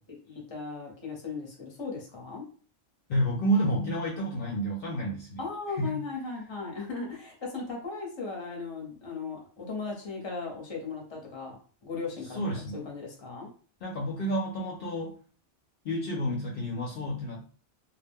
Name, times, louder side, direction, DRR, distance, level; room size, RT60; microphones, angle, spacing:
voice 1, 0.1-2.4 5.4-12.4 12.7-13.5, left 4 dB, 30° left, -1 dB, 0.7 m, -37 dB
voice 2, 3.1-5.4 5.8-6.0 12.3-12.8 13.8-15.1 15.8-17.5, right 1 dB, 60° left, -2 dB, 0.7 m, -30 dB
2.4 x 2.1 x 3.4 m, 0.41 s
omnidirectional pair, 1.2 m